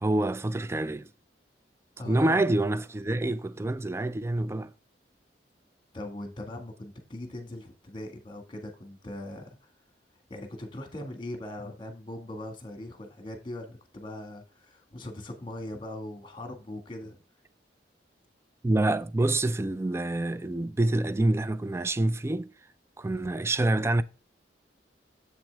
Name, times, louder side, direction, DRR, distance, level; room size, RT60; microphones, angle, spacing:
voice 1, 0.0-1.1 2.1-4.7 18.6-22.5 23.0-24.0, right 2 dB, 15° right, 0.3 m, -27 dB
voice 2, 2.0-2.4 5.9-9.7 10.3-17.2, left 1 dB, 30° left, 1.7 m, -40 dB
7.9 x 5.9 x 3.4 m
head